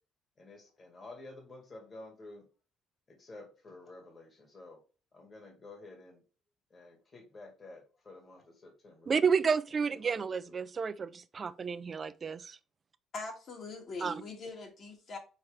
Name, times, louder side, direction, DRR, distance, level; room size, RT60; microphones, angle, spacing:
voice 1, 0.4-2.4 3.1-4.8 5.1-6.2 6.7-9.1 9.7-10.6, left 2 dB, 30° left, 2.0 m, -51 dB
voice 2, 9.1-12.6 14.0-14.1, right 6 dB, 30° right, 0.4 m, -31 dB
voice 3, 13.1-15.2, left 3 dB, 45° left, 2.2 m, -42 dB
6.2 x 4.5 x 3.5 m
cardioid pair, 135°, 0 cm